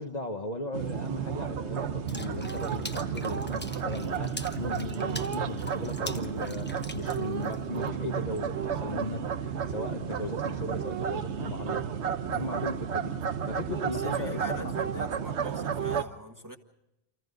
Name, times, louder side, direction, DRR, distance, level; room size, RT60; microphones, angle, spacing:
voice 1, 0.0-11.8 12.3-13.2 13.5-14.7, left 2 dB, 40° left, 1.2 m, -37 dB
sound 1, 0.7-16.0, right 7 dB, 85° right, 1.2 m, -32 dB
Water / Splash splatter, 2.1-7.9, left 1 dB, 10° left, 1.0 m, -44 dB
voice 2, 7.3-7.9 12.2-12.5 13.9-16.6, equal, 15° right, 1.8 m, -44 dB
29.0 x 26.0 x 3.9 m
omnidirectional pair, 1.1 m